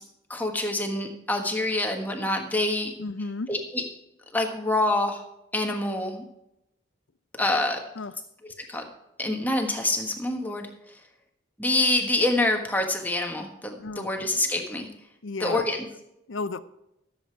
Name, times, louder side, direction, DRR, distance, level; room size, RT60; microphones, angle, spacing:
voice 1, 0.3-2.9 3.5-3.8 4.3-5.2 5.5-6.2 7.4-7.8 8.4-8.9 9.2-10.7 11.6-14.9 15.4-15.8, left 2 dB, 10° left, 2 dB, 1.4 m, -26 dB
voice 2, 3.0-3.5 8.0-8.1 13.8-14.5 15.2-15.6 16.3-16.6, left 3 dB, 85° left, 14 dB, 0.6 m, -34 dB
14.5 x 7.8 x 4.6 m, 0.86 s
head